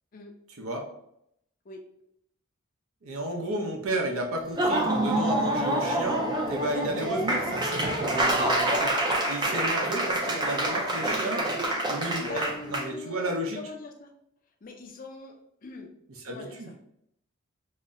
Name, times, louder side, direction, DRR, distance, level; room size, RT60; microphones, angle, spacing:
voice 1, 0.6-0.9 3.0-8.9 9.3-11.5 11.9-13.6 16.2-16.7, right 1 dB, 85° right, 2 dB, 0.7 m, -32 dB
Laughter / Applause, 4.4-12.9, right 1 dB, 20° right, 0.4 m, -27 dB
voice 2, 9.8-10.2 12.2-14.1 14.6-15.4 15.6-15.9 16.3-16.6, left 3 dB, 40° left, 3 dB, 0.4 m, -42 dB
4.0 x 2.1 x 2.5 m, 0.75 s
head